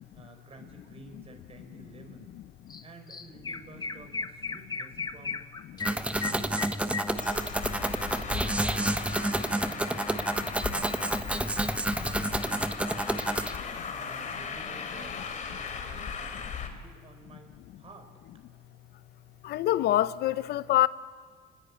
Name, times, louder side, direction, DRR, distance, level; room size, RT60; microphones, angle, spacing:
voice 1, 0.1-2.4 2.8-5.4 5.7-6.7 7.2-11.0 11.4-13.5 13.8-16.3 16.8-18.1, right 3 dB, 35° right, 4.8 m, -51 dB
Chirp tweet, 2.7-2.8 3.1-7.7, left 5 dB, 25° left, 1.1 m, -36 dB
sound 1, 5.8-13.6, right 1 dB, 5° right, 1.3 m, -29 dB
Traffic noise roadway noise, 7.2-16.7, left 6 dB, 50° left, 3.5 m, -38 dB
voice 2, 19.4-20.9, left 13 dB, 75° left, 0.9 m, -26 dB
29.5 x 20.5 x 8.8 m
cardioid pair, 110°, 17 cm